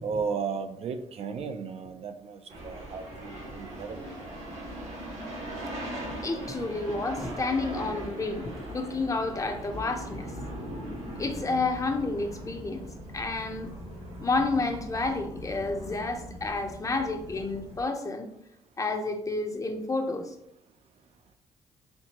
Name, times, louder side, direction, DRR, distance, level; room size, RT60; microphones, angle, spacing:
voice 1, 0.0-4.1, right 5 dB, 60° right, 7 dB, 0.5 m, -35 dB
sound 1, 2.5-17.8, equal, 80° right, 1.4 m, -40 dB
voice 2, 6.2-10.3 11.2-12.9 13.1-13.8 14.2-18.3 18.8-20.3, left 3 dB, 30° left, 6 dB, 0.6 m, -30 dB
4.5 x 3.7 x 2.9 m, 0.76 s
cardioid pair, 80°, 12 cm